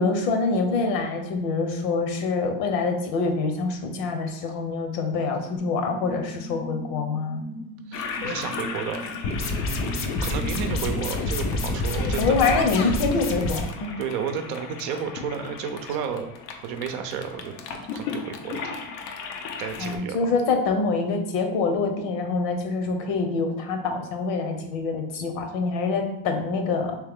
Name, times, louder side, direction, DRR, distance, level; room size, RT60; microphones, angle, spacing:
voice 1, 0.0-7.5 12.2-14.0 19.8-27.0, left 4 dB, 60° left, 5 dB, 0.9 m, -25 dB
sound 1, 5.6-12.9, equal, 30° right, 1.0 m, -40 dB
Toilet flush, 7.9-20.0, left 5 dB, 90° left, 0.7 m, -36 dB
voice 2, 7.9-12.5 14.0-16.3 16.6-18.8 19.6-20.3, right 6 dB, 60° right, 6 dB, 0.7 m, -32 dB
sound 2, 9.2-13.6, left 2 dB, 30° left, 0.4 m, -28 dB
3.2 x 3.1 x 3.6 m, 0.84 s
supercardioid pair, 110°, 50 cm